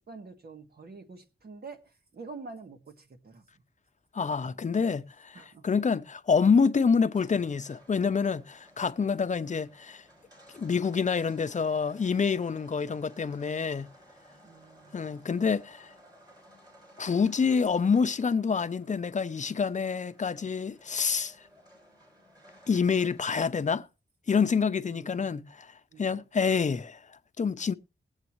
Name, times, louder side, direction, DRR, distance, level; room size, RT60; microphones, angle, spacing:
voice 1, 0.0-3.4 4.2-4.6 5.3-5.7 14.4-15.1 24.8-25.5 25.9-26.2, right 4 dB, 65° right, 1.8 m, -47 dB
voice 2, 4.1-10.0 10.5-13.9 14.9-15.9 17.0-21.3 22.7-23.9 24.3-25.7 26.0-27.0 27.4-27.7, left 5 dB, 45° left, 0.6 m, -27 dB
sound 1, 7.1-23.3, equal, 20° right, 5.5 m, -57 dB
20.0 x 8.1 x 3.1 m
wide cardioid pair, 140°, 17 cm